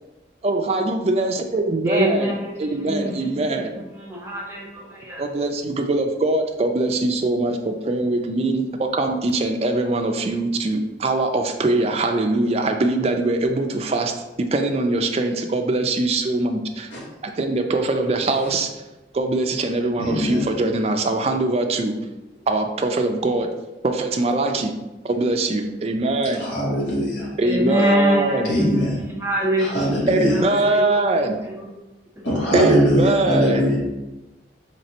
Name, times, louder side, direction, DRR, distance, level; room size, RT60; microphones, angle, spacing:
voice 1, 0.4-3.7 5.2-14.1 14.4-16.9 17.2-18.7 19.1-21.9 22.5-23.5 23.8-24.7 25.0-26.5 27.4-28.5 30.1-31.4 32.5-33.6, right 2 dB, 35° right, 4 dB, 0.3 m, -22 dB
voice 2, 1.8-2.5 2.9-3.5 4.0-5.2 27.4-31.7 32.4-32.5, equal, 15° right, -4 dB, 0.9 m, -25 dB
voice 3, 20.0-20.5 26.4-27.3 28.4-29.0 29.6-30.4 32.2-33.8, equal, 85° left, -5 dB, 1.0 m, -21 dB
4.1 x 3.2 x 2.8 m, 1.0 s
head